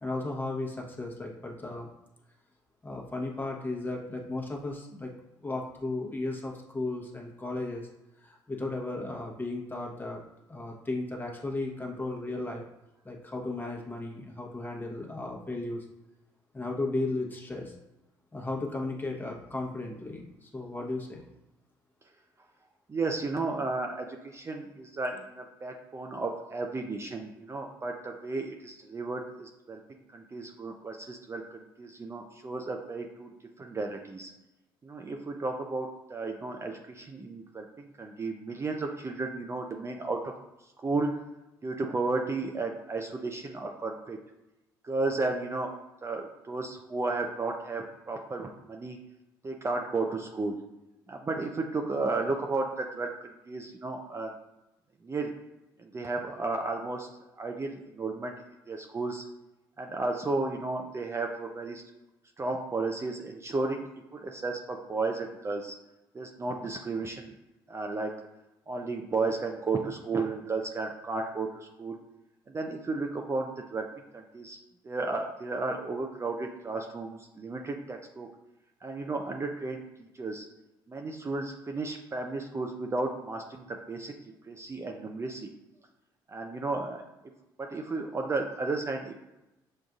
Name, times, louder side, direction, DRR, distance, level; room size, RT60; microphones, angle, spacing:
voice 1, 0.0-1.9 2.8-5.1 5.4-7.9 8.2-10.2 10.5-12.6 13.0-15.8 16.5-17.7 18.3-21.2, left 2 dB, 20° left, -1 dB, 1.0 m, -35 dB
voice 2, 22.9-29.8 30.1-33.3 33.6-34.3 34.8-40.3 40.6-41.1 41.6-44.2 44.8-45.7 46.0-49.0 49.4-50.6 51.1-54.3 55.0-55.3 55.8-57.1 57.4-58.3 58.7-59.3 59.8-61.8 62.4-65.8 66.1-67.3 67.7-68.1 68.7-72.0 72.5-73.8 74.1-74.6 74.8-78.3 78.8-79.8 80.1-80.5 80.9-84.1 84.4-85.5 86.3-87.1 87.6-89.1, right 3 dB, 25° right, 2 dB, 0.5 m, -33 dB
6.3 x 2.5 x 2.4 m, 0.94 s
hypercardioid pair, 60°, 10 cm